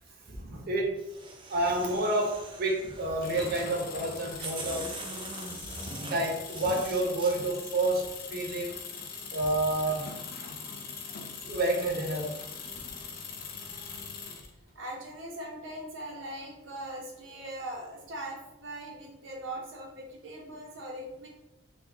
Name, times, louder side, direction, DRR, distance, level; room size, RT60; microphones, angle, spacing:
voice 1, 0.2-1.0 1.5-4.9 6.1-8.8 9.3-10.1 11.5-12.4, right 2 dB, 55° right, 0 dB, 0.7 m, -29 dB
sound 1, 1.0-3.3 4.0-4.1 4.4-7.3, right 2 dB, 25° right, 0.4 m, -42 dB
sound 2, 3.2-14.5, left 5 dB, 50° left, 0.4 m, -42 dB
voice 2, 14.7-21.3, right 1 dB, 90° right, -1 dB, 0.9 m, -40 dB
3.4 x 2.3 x 2.8 m, 0.89 s
head